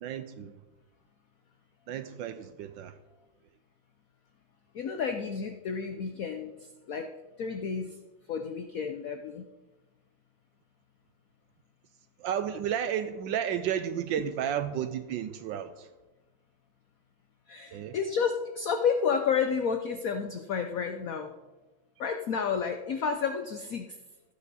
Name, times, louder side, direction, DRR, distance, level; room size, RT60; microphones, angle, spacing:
voice 1, 0.0-0.6 1.9-3.0 12.2-15.9 17.7-18.0, right 9 dB, 75° right, 1.3 m, -32 dB
voice 2, 4.7-6.5 6.9-7.1 7.4-7.9 8.3-9.5 17.5-21.3 22.0-23.9, left 6 dB, 60° left, 0.9 m, -30 dB
15.5 x 8.5 x 4.1 m
omnidirectional pair, 2.1 m